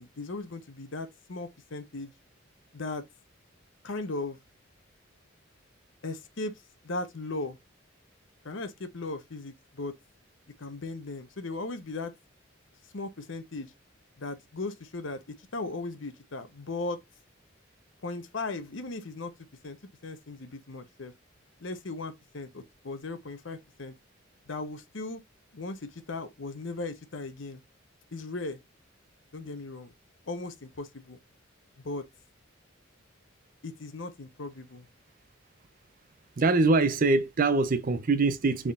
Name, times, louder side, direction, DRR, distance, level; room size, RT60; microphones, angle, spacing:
voice 1, 0.0-2.1 2.7-3.0 3.8-4.4 6.0-7.6 8.4-9.9 10.6-12.1 12.9-13.7 14.2-17.0 18.0-19.3 19.6-19.8 20.0-21.1 21.6-23.9 24.5-25.2 25.5-27.6 28.1-28.6 29.3-29.9 30.3-31.2 31.8-32.1 33.6-34.9, left 3 dB, 65° left, 0.8 m, -37 dB
voice 2, 36.4-38.7, right 3 dB, 45° right, 0.5 m, -23 dB
4.1 x 3.6 x 2.4 m
head